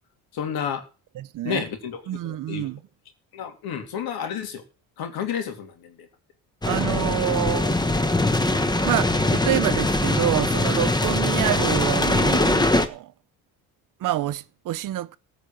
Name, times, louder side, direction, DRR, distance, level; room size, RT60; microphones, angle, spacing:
voice 1, 0.3-0.8 1.4-2.0 2.5-2.7 3.3-4.6 5.0-6.1, left 8 dB, 65° left, 2.9 m, -30 dB
voice 2, 1.1-1.7 2.1-2.8 6.6-7.8 8.8-13.1 14.0-15.2, right 14 dB, 55° right, 0.7 m, -27 dB
sound 1, 6.6-12.9, left 2 dB, 10° left, 1.2 m, -22 dB
14.5 x 5.0 x 8.8 m
supercardioid pair, 75°, 39 cm